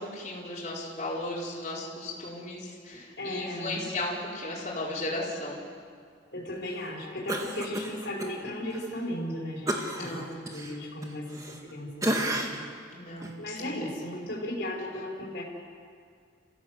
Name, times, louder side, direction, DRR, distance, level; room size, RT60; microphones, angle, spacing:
voice 1, 0.0-5.6 9.9-10.3 12.9-13.7, left 2 dB, 35° left, -7 dB, 4.9 m, -35 dB
voice 2, 3.2-3.8 6.3-12.6 13.4-15.4, left 1 dB, 60° left, -3 dB, 4.8 m, -36 dB
Cough, 7.3-8.3 8.7-8.9 9.7-11.7 12.0-12.7 13.2-13.4, right 1 dB, 15° right, 1.8 m, -32 dB
29.5 x 15.5 x 8.0 m, 2.1 s
head